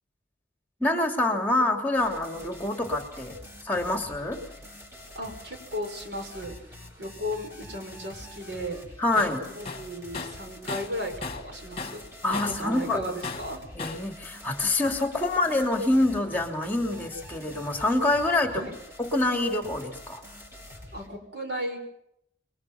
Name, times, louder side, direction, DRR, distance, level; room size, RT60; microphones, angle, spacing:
voice 1, 0.8-3.4 3.6-4.4 9.0-9.5 12.2-13.0 13.7-18.7 19.0-20.2, left 2 dB, 10° left, 3 dB, 3.0 m, -26 dB
sound 1, 1.9-21.1, left 1 dB, 15° right, 6.8 m, -46 dB
voice 2, 5.1-6.5 7.0-8.8 9.5-12.0 12.3-13.6 18.5-18.8 20.9-21.8, equal, 85° right, 5 dB, 6.5 m, -35 dB
Tools, 9.2-9.4 9.7-11.5 11.8-12.7 13.2-14.1, left 4 dB, 35° left, 1.8 m, -36 dB
29.0 x 22.5 x 5.8 m, 0.76 s
head